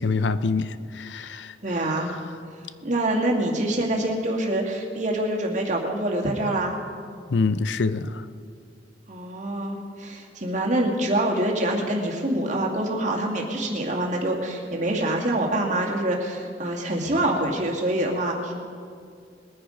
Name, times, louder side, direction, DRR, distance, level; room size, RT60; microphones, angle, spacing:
voice 1, 0.0-1.6 7.3-8.2, left 4 dB, 85° left, 13 dB, 0.6 m, -25 dB
voice 2, 1.6-2.1 2.8-6.8 9.1-18.5, right 1 dB, 40° right, 0 dB, 2.1 m, -25 dB
21.0 x 9.8 x 5.1 m, 2.3 s
head